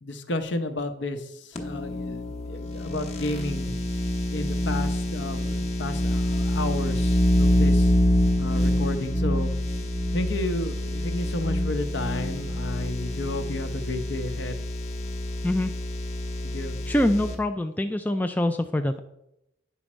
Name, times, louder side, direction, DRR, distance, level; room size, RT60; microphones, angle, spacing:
voice 1, 0.0-3.7 4.3-7.9 8.4-9.5 10.1-14.6 16.4-16.8, left 2 dB, 65° left, 8 dB, 0.9 m, -32 dB
sound 1, 1.5-17.3, left 1 dB, 35° left, 0.9 m, -26 dB
voice 2, 16.9-19.0, left 1 dB, 10° left, 6 dB, 0.3 m, -24 dB
9.2 x 4.3 x 6.1 m, 0.84 s
head